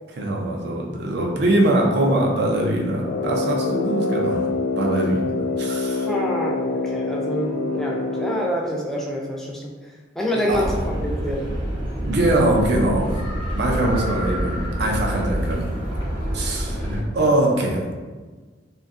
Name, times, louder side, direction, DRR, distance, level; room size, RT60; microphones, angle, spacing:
voice 1, 0.2-4.5 4.8-5.3 5.6-6.1 10.3-10.7 12.0-13.2 13.5-15.7 16.3-17.8, right 1 dB, 65° right, -1 dB, 0.5 m, -22 dB
Brass instrument, 3.0-8.6, left 3 dB, 85° left, 0.3 m, -25 dB
voice 2, 6.1-9.7 10.2-11.5, equal, ahead, -3 dB, 0.3 m, -26 dB
sound 1, 10.5-17.0, equal, 30° right, 0.8 m, -27 dB
2.6 x 2.2 x 2.5 m, 1.4 s
head